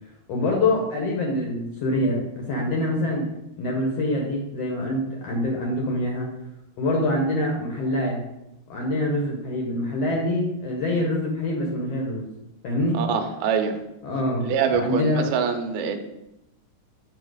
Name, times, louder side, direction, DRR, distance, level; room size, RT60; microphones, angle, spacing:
voice 1, 0.3-3.2 3.6-6.3 6.8-8.2 8.7-12.2 12.6-13.0 14.0-15.3, left 1 dB, 70° left, 0 dB, 1.6 m, -25 dB
voice 2, 12.9-13.8 14.4-16.0, right 6 dB, 75° right, 5 dB, 1.9 m, -24 dB
7.8 x 2.9 x 4.8 m, 0.88 s
omnidirectional pair, 3.7 m